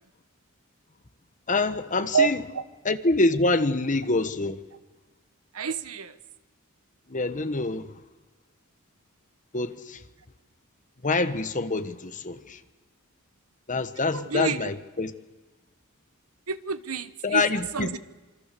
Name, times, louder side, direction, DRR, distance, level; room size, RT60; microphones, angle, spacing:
voice 1, 1.5-2.4 2.8-4.6 7.1-7.9 9.5-10.0 11.0-12.6 13.7-15.1 17.2-18.0, left 3 dB, 35° left, 1.3 m, -26 dB
voice 2, 2.1-2.9 5.5-6.2 14.1-14.7 16.5-18.0, right 6 dB, 75° right, 1.1 m, -29 dB
27.0 x 25.0 x 6.9 m
head